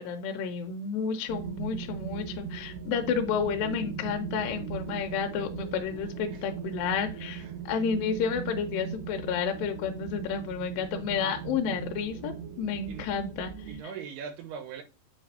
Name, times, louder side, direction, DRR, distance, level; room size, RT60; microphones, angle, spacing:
voice 1, 0.0-13.7, left 6 dB, 75° left, 2.2 m, -31 dB
sound 1, 1.3-13.8, right 7 dB, 70° right, 2.4 m, -39 dB
voice 2, 13.7-14.8, right 6 dB, 90° right, 3.0 m, -40 dB
8.7 x 5.1 x 2.6 m
omnidirectional pair, 4.5 m